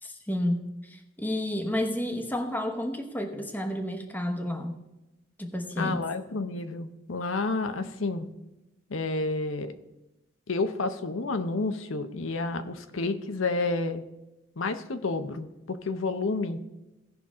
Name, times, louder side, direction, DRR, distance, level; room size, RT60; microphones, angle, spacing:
voice 1, 0.0-4.8 5.4-6.1, left 1 dB, 10° left, 5 dB, 1.0 m, -31 dB
voice 2, 5.8-8.3 8.9-9.7 10.5-14.0 14.6-16.6, left 3 dB, 85° left, 9 dB, 0.8 m, -30 dB
16.5 x 5.8 x 3.7 m, 0.99 s
head